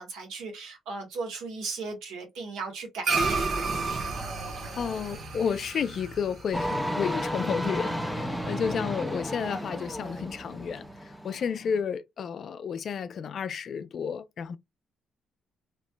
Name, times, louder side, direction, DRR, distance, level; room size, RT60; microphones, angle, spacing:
voice 1, 0.0-3.8, right 4 dB, 90° right, 1.3 m, -37 dB
sound 1, 3.0-7.7, right 4 dB, 55° right, 0.9 m, -31 dB
voice 2, 4.8-14.6, left 7 dB, 55° left, 0.4 m, -32 dB
sound 2, 6.5-11.8, equal, 5° right, 0.6 m, -33 dB
3.1 x 2.9 x 2.2 m
cardioid pair, 90°, 0 cm